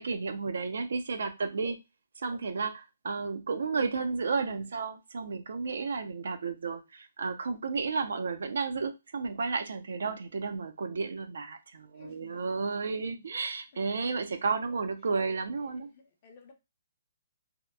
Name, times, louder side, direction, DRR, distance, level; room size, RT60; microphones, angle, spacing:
voice 1, 0.0-1.8 2.2-15.9, right 4 dB, 75° right, 8 dB, 0.4 m, -32 dB
voice 2, 11.9-13.3 13.7-13.9 15.7-16.5, left 4 dB, 35° left, 4 dB, 0.6 m, -55 dB
2.8 x 2.0 x 2.3 m, 0.24 s
hypercardioid pair, 155°, 0 cm